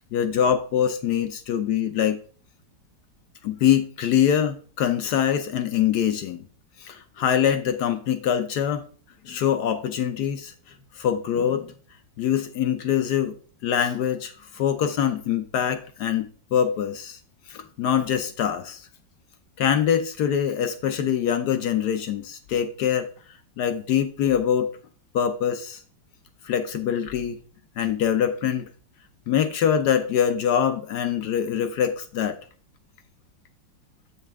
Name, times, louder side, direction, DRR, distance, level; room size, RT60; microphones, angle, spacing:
voice 1, 0.1-2.2 3.4-6.4 6.8-8.8 9.2-10.5 11.0-11.7 12.2-13.3 13.6-17.2 17.5-18.8 19.6-23.1 23.6-24.7 25.1-25.8 26.4-27.4 27.8-28.6 29.3-32.4, left 9 dB, 65° left, 8 dB, 1.1 m, -24 dB
7.7 x 5.6 x 3.5 m, 0.41 s
omnidirectional pair, 2.1 m